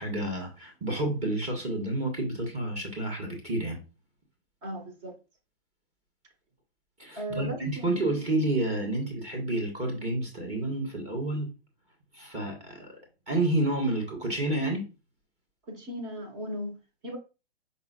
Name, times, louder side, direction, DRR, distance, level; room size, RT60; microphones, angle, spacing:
voice 1, 0.0-3.8 7.0-11.5 12.1-12.9 13.3-14.8, right 2 dB, 20° right, 1.8 m, -29 dB
voice 2, 4.6-5.1 7.1-8.1 15.7-17.2, equal, 40° right, 1.7 m, -37 dB
5.2 x 3.8 x 2.5 m
hypercardioid pair, 135°, 32 cm